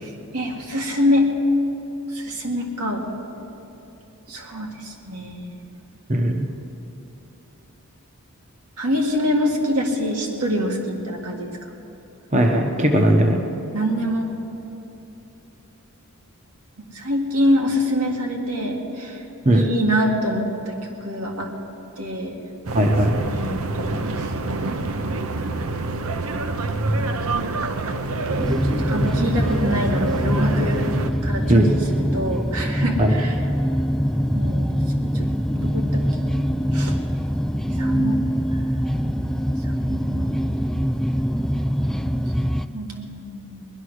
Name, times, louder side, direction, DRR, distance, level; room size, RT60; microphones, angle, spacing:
voice 1, 0.0-1.3 2.1-3.0 4.3-5.6 8.8-11.7 13.7-14.3 16.9-19.2 19.5-20.7 21.0-21.5 22.0-22.4 23.3-24.3 25.2-25.5 25.8-26.0 28.6-30.8 31.2-31.7 31.9-33.4 34.3-35.3 35.6-36.4 36.7-37.0 37.8-38.2 39.6-40.4 42.7-43.7, equal, 85° right, 0 dB, 2.1 m, -25 dB
voice 2, 6.1-6.5 12.3-13.4 19.4-19.6 22.7-23.2 31.5-31.7 33.0-33.1, right 1 dB, 30° right, 2 dB, 0.9 m, -18 dB
sound 1, 22.7-31.1, right 2 dB, 65° right, 0.7 m, -27 dB
sound 2, 28.4-42.7, equal, ahead, 0.3 m, -23 dB
19.5 x 11.0 x 6.4 m, 3.0 s
head